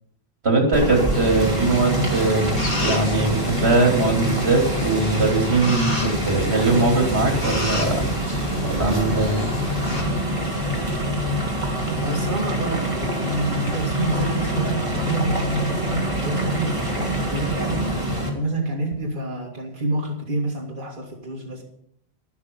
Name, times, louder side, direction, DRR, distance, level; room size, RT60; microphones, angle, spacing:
voice 1, 0.4-8.1 8.7-9.4, right 3 dB, 75° right, 2 dB, 3.2 m, -21 dB
sound 1, 0.7-18.3, equal, 30° right, 3.0 m, -25 dB
sound 2, 1.1-10.0, equal, 45° left, 3.1 m, -31 dB
voice 2, 12.0-21.6, right 2 dB, 50° right, -1 dB, 2.5 m, -28 dB
12.5 x 12.0 x 5.4 m, 0.69 s
omnidirectional pair, 1.1 m